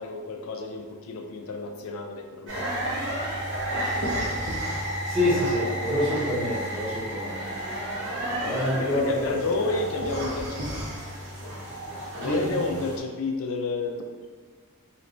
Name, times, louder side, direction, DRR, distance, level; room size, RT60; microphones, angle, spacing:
voice 1, 0.0-2.6 8.7-10.6 12.2-14.0, left 3 dB, 65° left, 3 dB, 0.4 m, -30 dB
sound 1, 2.5-13.0, right 1 dB, 55° right, 0.8 m, -32 dB
voice 2, 5.0-7.4 8.2-9.3 12.2-12.7, left 1 dB, 10° right, -14 dB, 0.7 m, -27 dB
3.2 x 3.1 x 2.5 m, 1.5 s
head